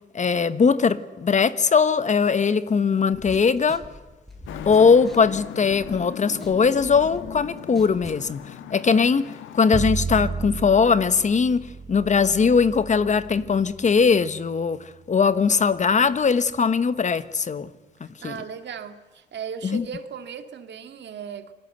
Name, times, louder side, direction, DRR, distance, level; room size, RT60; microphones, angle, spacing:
voice 1, 0.1-3.8 4.7-8.4 8.7-11.6 11.9-17.7 18.2-18.3 19.6-19.8, left 5 dB, 35° left, 1.1 m, -20 dB
sound 1, 3.1-6.1 6.4-8.3, equal, ahead, 5.2 m, -43 dB
Traffic noise roadway noise, 4.5-9.8, left 10 dB, 85° left, 1.4 m, -39 dB
Bowed string instrument, 9.7-15.8, right 5 dB, 35° right, 1.2 m, -34 dB
voice 2, 18.0-21.5, right 7 dB, 60° right, 2.1 m, -37 dB
28.0 x 20.5 x 8.0 m
cardioid pair, 90°, 20 cm